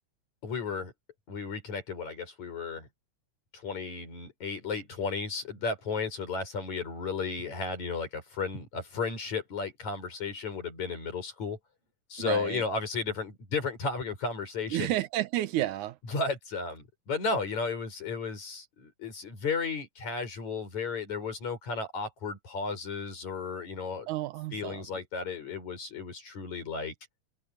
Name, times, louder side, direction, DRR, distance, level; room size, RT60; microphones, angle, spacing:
voice 1, 0.4-0.9 1.3-2.9 3.5-11.6 12.1-15.0 16.1-24.1 24.5-26.9, left 4 dB, 70° left, 7.3 m, -34 dB
voice 2, 12.2-12.6 14.7-16.0 24.1-24.9, right 14 dB, 85° right, 2.5 m, -31 dB
omnidirectional pair, 3.4 m